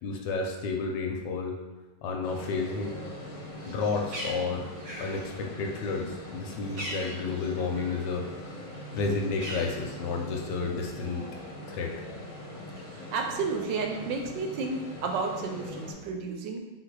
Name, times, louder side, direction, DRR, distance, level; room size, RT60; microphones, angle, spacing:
voice 1, 0.0-1.6 2.0-3.0 3.7-4.7 5.0-8.6 9.0-11.3 11.7-11.9, left 4 dB, 75° left, 1 dB, 1.2 m, -31 dB
sound 1, 2.2-15.9, left 1 dB, 55° left, 1.0 m, -42 dB
Bird, 3.5-8.1 8.4-10.4, equal, 50° right, 0.7 m, -42 dB
voice 2, 12.8-16.6, right 4 dB, 75° right, 2 dB, 1.2 m, -32 dB
3.9 x 2.6 x 4.6 m, 1.1 s
omnidirectional pair, 2.1 m